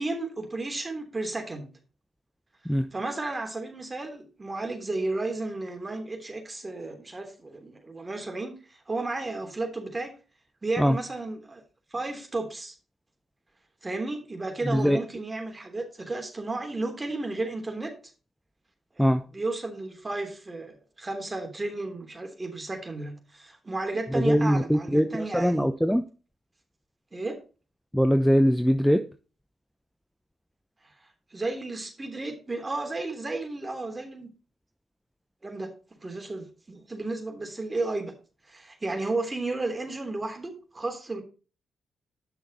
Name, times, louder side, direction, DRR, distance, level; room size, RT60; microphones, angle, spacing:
voice 1, 0.0-1.7 2.9-8.6 8.9-10.1 10.6-11.6 11.9-12.7 13.8-17.9 19.3-25.7 27.1-27.4 31.3-34.3 35.4-35.7 36.0-38.1 38.5-41.2, right 2 dB, 25° right, 5 dB, 3.3 m, -33 dB
voice 2, 14.6-15.0 19.0-19.2 24.1-26.0 27.9-29.0, equal, ahead, 8 dB, 0.8 m, -22 dB
10.5 x 6.3 x 4.2 m, 0.34 s
hypercardioid pair, 40°, 0 cm